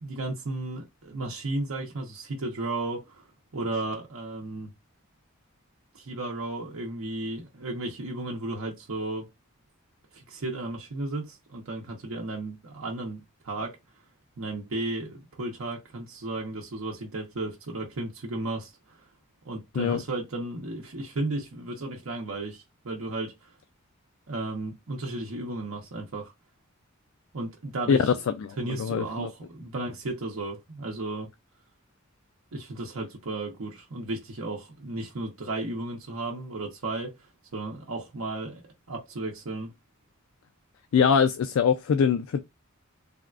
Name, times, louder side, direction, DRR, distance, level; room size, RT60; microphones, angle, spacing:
voice 1, 0.0-3.3 3.5-4.7 5.9-9.3 10.1-13.7 14.4-18.7 19.4-23.3 24.3-26.3 27.3-28.0 28.6-31.3 32.5-37.1 37.5-38.6 38.9-39.7, right 2 dB, 75° right, 0.7 m, -34 dB
voice 2, 27.9-29.3 40.9-42.4, left 6 dB, 70° left, 0.3 m, -23 dB
3.5 x 2.3 x 2.3 m
head